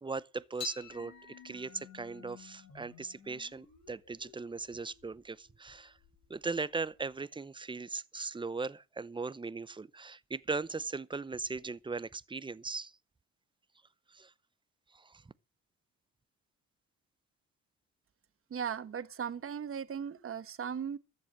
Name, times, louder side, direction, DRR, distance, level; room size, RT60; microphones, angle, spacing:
voice 1, 0.0-1.1 1.4-5.9 6.3-12.9 14.1-14.3 14.9-15.2, right 4 dB, 15° right, 0.6 m, -38 dB
sound 1, 0.6-7.1, left 9 dB, 60° left, 6.1 m, -51 dB
voice 2, 18.5-21.0, right 7 dB, 45° right, 1.3 m, -37 dB
14.0 x 8.1 x 7.5 m
cardioid pair, 90°, 30 cm